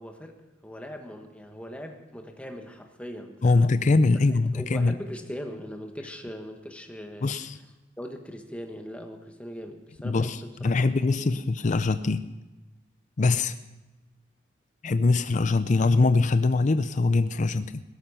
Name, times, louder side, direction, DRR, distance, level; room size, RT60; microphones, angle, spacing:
voice 1, 0.0-3.7 4.1-4.2 4.5-7.3 8.0-10.9 11.2-11.3, equal, 5° left, 4 dB, 1.4 m, -40 dB
voice 2, 3.4-4.9 7.2-7.6 10.0-12.2 13.2-13.5 14.8-17.8, left 3 dB, 40° left, 11 dB, 0.5 m, -23 dB
17.0 x 13.0 x 5.6 m, 1.1 s
head